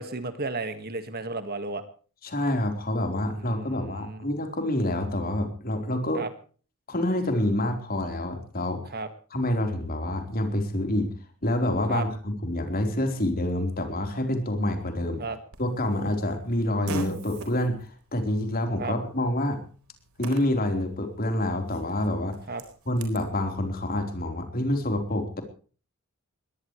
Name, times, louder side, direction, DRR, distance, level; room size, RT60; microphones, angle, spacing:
voice 1, 0.0-1.8 3.4-4.3 6.1-6.3 8.9-9.1 11.9-12.0 15.2-15.4 18.8-18.9 22.5-22.6, right 3 dB, 45° right, 10 dB, 1.9 m, -33 dB
voice 2, 2.2-6.2 6.9-8.8 9.3-11.1 11.4-15.2 15.6-19.6 20.2-22.4 22.9-25.4, left 1 dB, 40° left, 5 dB, 4.2 m, -27 dB
Fart, 15.5-23.3, right 2 dB, 75° right, 4.1 m, -43 dB
21.5 x 18.5 x 3.3 m, 0.40 s
head